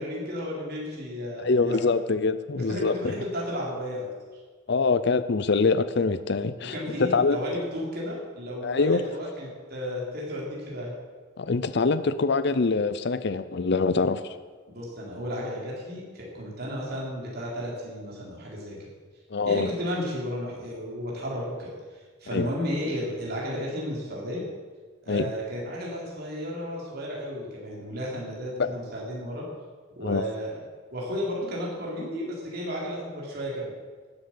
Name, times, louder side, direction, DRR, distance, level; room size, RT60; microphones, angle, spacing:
voice 1, 0.0-1.8 2.6-4.1 6.7-10.9 14.7-18.8 19.4-21.7 22.2-24.5 25.0-29.4 30.0-30.6 30.9-33.7, equal, 55° right, -4 dB, 3.9 m, -33 dB
voice 2, 1.4-3.2 4.7-7.6 8.6-9.0 11.4-14.3 19.3-19.7 22.3-22.5 25.1-25.3 28.6-28.7 30.0-30.2, left 4 dB, 60° left, 13 dB, 0.6 m, -24 dB
12.5 x 8.1 x 8.7 m, 1.4 s
head